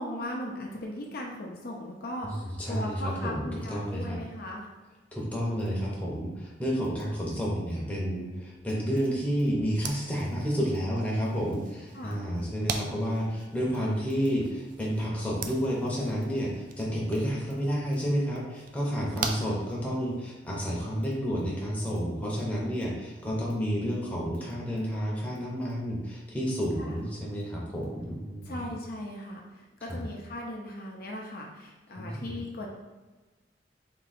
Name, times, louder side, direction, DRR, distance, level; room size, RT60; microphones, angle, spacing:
voice 1, 0.0-4.7 11.9-12.3 19.0-19.6 26.8-27.0 28.4-32.7, left 1 dB, 55° left, -1 dB, 0.7 m, -38 dB
voice 2, 2.2-4.2 5.1-28.6 29.9-30.0 32.0-32.4, equal, 10° left, -5 dB, 0.9 m, -30 dB
sound 1, 9.7-20.3, right 5 dB, 50° right, 0.4 m, -42 dB
3.7 x 2.7 x 4.2 m, 1.3 s
head